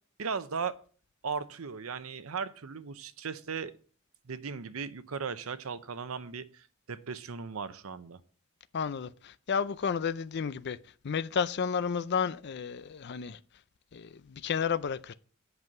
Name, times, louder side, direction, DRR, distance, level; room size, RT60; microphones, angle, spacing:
voice 1, 0.2-0.8 1.2-3.7 4.3-8.2, right 5 dB, 90° right, 0.7 m, -37 dB
voice 2, 8.7-10.8 11.0-13.4 13.9-15.1, left 6 dB, 55° left, 0.5 m, -32 dB
8.0 x 5.5 x 7.4 m
head